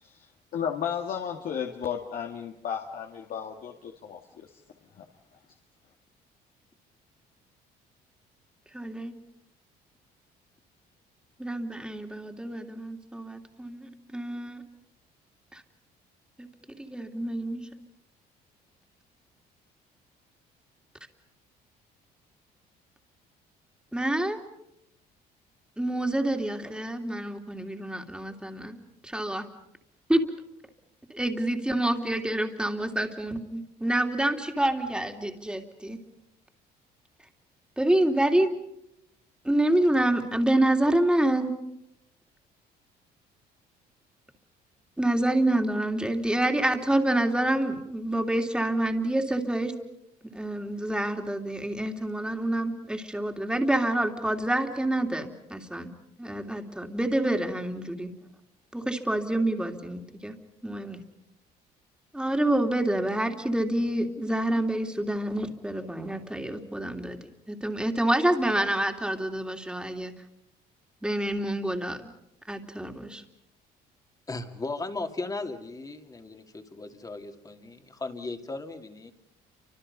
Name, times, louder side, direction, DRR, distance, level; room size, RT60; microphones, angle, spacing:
voice 1, 0.5-4.5 5.0-5.1, left 8 dB, 60° left, 3 dB, 2.1 m, -34 dB
voice 2, 8.7-9.1 11.4-14.6 15.5-15.6 16.4-16.5 16.8-17.7 23.9-24.4 25.8-29.5 30.1-30.3 31.1-36.0 37.8-38.5 39.4-41.5 45.0-49.7 50.3-55.9 56.2-58.1 58.7-60.3 60.6-61.0 62.1-67.2 67.5-70.1 71.0-72.1 72.5-73.2, right 1 dB, 5° right, 4 dB, 2.9 m, -27 dB
voice 3, 74.3-79.1, left 3 dB, 20° left, 6 dB, 2.5 m, -36 dB
29.5 x 25.5 x 5.5 m, 0.80 s
cardioid pair, 110°, 17 cm